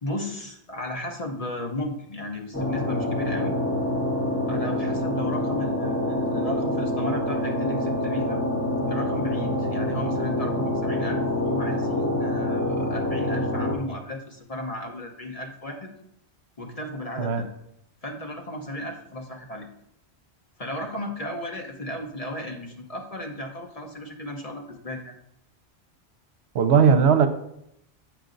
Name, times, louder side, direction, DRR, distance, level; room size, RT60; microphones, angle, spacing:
voice 1, 0.0-3.6 4.5-8.4 8.9-15.9 16.6-17.5 18.0-19.7 20.6-25.1, left 1 dB, 35° left, 2 dB, 0.8 m, -34 dB
sound 1, 2.5-13.7, left 1 dB, 10° left, 1.2 m, -26 dB
voice 2, 26.5-27.3, right 6 dB, 75° right, 8 dB, 0.9 m, -18 dB
8.6 x 4.9 x 3.9 m, 0.78 s
omnidirectional pair, 1.1 m